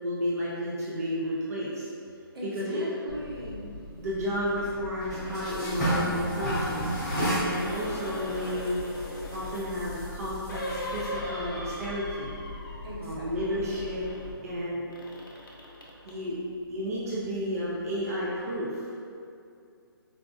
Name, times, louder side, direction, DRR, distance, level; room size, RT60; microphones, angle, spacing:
voice 1, 0.0-1.9 2.4-2.8 4.0-6.9 7.4-8.9 9.3-12.3 13.0-14.0 14.4-15.0 16.1-16.3 16.7-18.8, equal, 40° right, -6 dB, 0.5 m, -32 dB
voice 2, 2.3-3.7 12.8-13.7, equal, 75° right, -5 dB, 0.9 m, -39 dB
sound 1, 3.1-14.3, equal, ahead, 0.9 m, -34 dB
sound 2, 7.5-9.8 10.5-13.0 13.2-14.3 14.9-16.2 16.9-17.0, left 1 dB, 60° left, 0.7 m, -39 dB
4.4 x 2.1 x 2.6 m, 2.4 s
hypercardioid pair, 170°, 13 cm